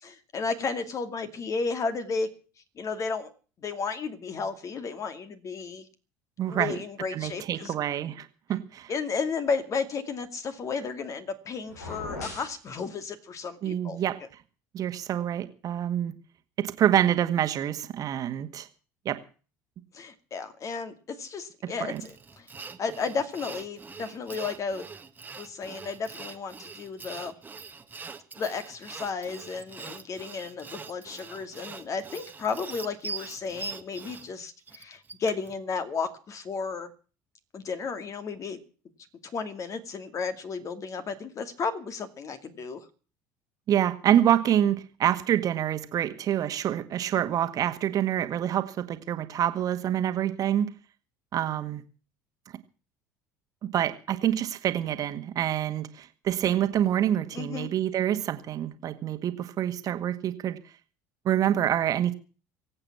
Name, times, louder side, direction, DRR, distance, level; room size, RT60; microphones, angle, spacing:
voice 1, 0.0-2.3 2.8-3.3 3.6-5.9 6.5-7.7 8.9-14.0 19.9-22.5 22.8-24.9 25.4-27.3 28.4-36.9 37.5-38.6 39.2-42.9 57.3-57.7, left 5 dB, 35° left, 9 dB, 2.5 m, -33 dB
voice 2, 6.4-6.8 7.1-8.9 13.6-14.2 14.7-16.1 16.6-18.7 19.0-19.2 21.9-22.0 43.7-50.7 51.3-51.8 53.6-60.6 61.2-62.1, right 11 dB, 40° right, 9 dB, 1.8 m, -26 dB
sound 1, 11.7-12.6, left 2 dB, 75° left, 3.5 m, -39 dB
Sawing, 22.0-35.6, right 4 dB, 20° right, 1.5 m, -42 dB
23.0 x 8.8 x 6.1 m, 0.38 s
figure-of-eight pair, 65°, 9 cm